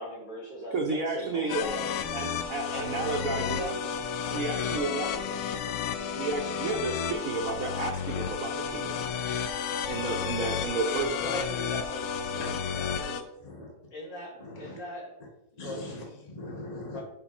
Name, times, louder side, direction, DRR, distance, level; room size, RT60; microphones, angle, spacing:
voice 1, 0.0-1.8 2.7-3.8 4.3-5.4 10.3-10.5 11.1-13.3 13.9-15.1 15.6-15.8 16.9-17.0, left 1 dB, 55° left, -6 dB, 3.7 m, -40 dB
voice 2, 0.7-1.6 2.1-3.6 4.3-5.1 6.2-9.0 9.9-11.3, right 4 dB, 70° right, 2 dB, 0.8 m, -32 dB
sound 1, 1.5-13.2, left 7 dB, 85° left, 1.6 m, -32 dB
voice 3, 13.4-13.7 14.4-14.8 15.6-17.0, left 2 dB, 20° left, -2 dB, 1.5 m, -41 dB
5.9 x 5.8 x 4.3 m, 0.87 s
omnidirectional pair, 2.4 m